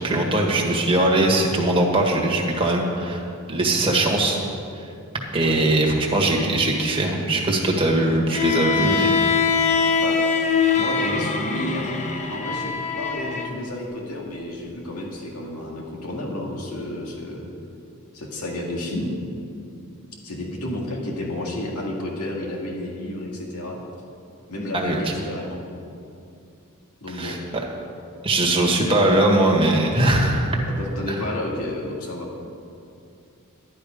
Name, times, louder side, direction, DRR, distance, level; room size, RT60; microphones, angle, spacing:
voice 1, 0.0-3.2 3.5-4.4 5.3-9.2 24.7-25.1 27.1-27.4 28.2-30.5, right 1 dB, 25° right, -1 dB, 1.7 m, -20 dB
voice 2, 5.4-5.8 10.0-10.2 10.8-11.9 12.3-17.5 18.1-19.2 20.2-23.8 24.5-25.6 27.0-27.4 28.7-29.0 30.8-32.3, left 1 dB, 80° left, -1 dB, 2.0 m, -31 dB
Bowed string instrument, 8.3-13.5, left 5 dB, 30° left, 0.8 m, -22 dB
11.5 x 11.5 x 5.1 m, 2.5 s
head